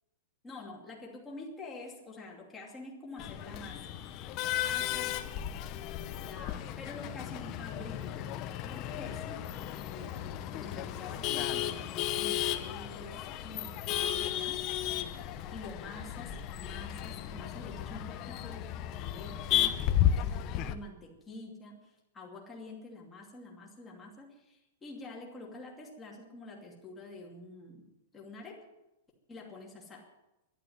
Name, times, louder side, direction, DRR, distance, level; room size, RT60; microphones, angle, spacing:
voice 1, 0.4-4.0 4.4-5.2 6.2-14.6 15.5-27.9 28.1-28.7 29.3-30.1, left 2 dB, 10° left, -2 dB, 2.7 m, -47 dB
Male speech man speaking / Laughter / Chatter, 3.2-20.7, left 11 dB, 25° left, 0.7 m, -34 dB
12.0 x 11.5 x 9.5 m, 0.96 s
supercardioid pair, 175°, 0 cm